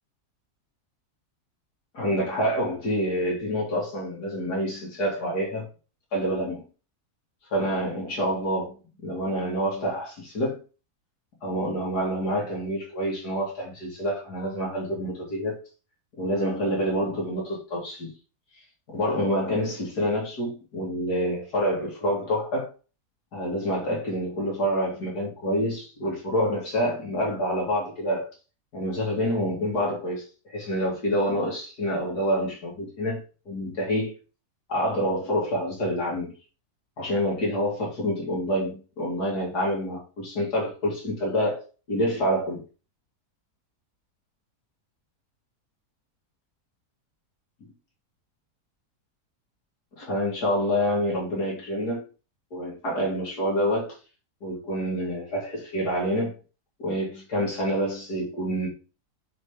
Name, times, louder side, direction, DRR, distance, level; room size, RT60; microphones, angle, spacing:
voice 1, 1.9-5.7 6.1-6.6 7.5-8.7 9.0-10.6 11.4-15.6 16.2-18.1 18.9-22.7 23.3-28.3 28.7-33.2 33.5-34.2 34.7-36.3 37.0-41.6 41.9-42.6 47.6-47.7 50.0-52.1 52.5-54.0 54.4-56.3 56.8-58.7, equal, 75° left, 2.8 m, -27 dB
6.4 x 4.0 x 5.0 m
omnidirectional pair, 1.7 m